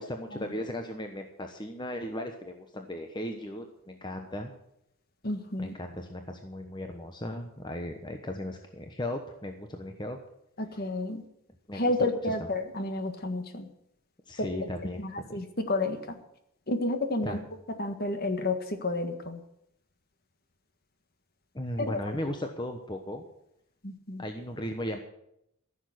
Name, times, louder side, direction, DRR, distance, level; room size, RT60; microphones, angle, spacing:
voice 1, 0.0-4.5 5.6-10.2 11.7-11.9 14.3-15.4 17.2-17.4 21.5-23.2 24.2-25.0, left 1 dB, 20° left, 4 dB, 1.1 m, -36 dB
voice 2, 5.2-5.7 10.6-11.2 11.7-13.7 14.4-14.7 15.0-16.2 16.7-17.4 17.7-19.4 21.9-22.0 23.8-24.2, left 2 dB, 45° left, 7 dB, 1.6 m, -31 dB
14.5 x 7.2 x 9.7 m, 0.78 s
head